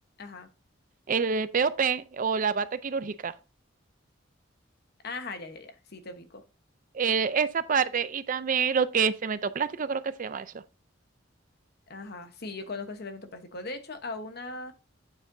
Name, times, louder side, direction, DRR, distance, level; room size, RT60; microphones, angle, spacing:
voice 1, 0.2-0.5 5.0-6.4 11.9-14.7, left 3 dB, 55° left, 1.1 m, -39 dB
voice 2, 1.1-3.3 6.9-10.5, right 6 dB, 40° right, 0.4 m, -27 dB
8.7 x 7.4 x 2.6 m
head